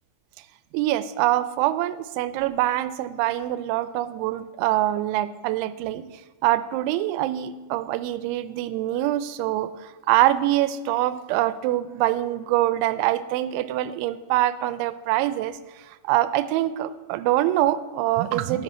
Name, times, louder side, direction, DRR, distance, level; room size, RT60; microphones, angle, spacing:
voice 1, 0.7-6.0 6.4-18.6, right 14 dB, 90° right, 14 dB, 3.0 m, -24 dB
12.5 x 10.5 x 4.3 m, 1.3 s
omnidirectional pair, 5.3 m